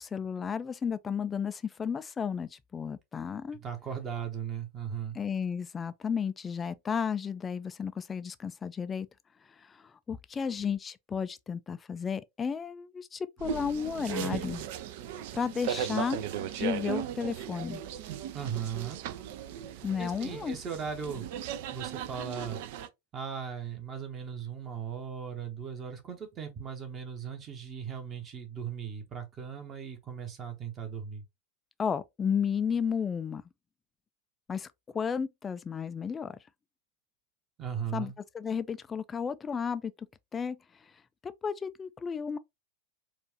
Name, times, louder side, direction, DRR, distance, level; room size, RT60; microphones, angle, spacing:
voice 1, 0.0-3.6 5.1-9.1 9.6-14.7 15.3-16.2 16.5-17.8 19.8-20.6 31.8-33.4 34.5-34.7 34.9-36.4 37.9-39.9 40.3-40.6 41.2-42.4, left 6 dB, 20° left, 0.3 m, -33 dB
voice 2, 3.6-5.2 18.3-19.0 19.7-21.3 21.7-22.6 23.1-31.2 37.6-38.1, right 7 dB, 25° right, 1.1 m, -38 dB
sound 1, 13.4-22.9, right 10 dB, 50° right, 0.4 m, -37 dB
4.4 x 2.4 x 2.9 m
figure-of-eight pair, 90°, 0 cm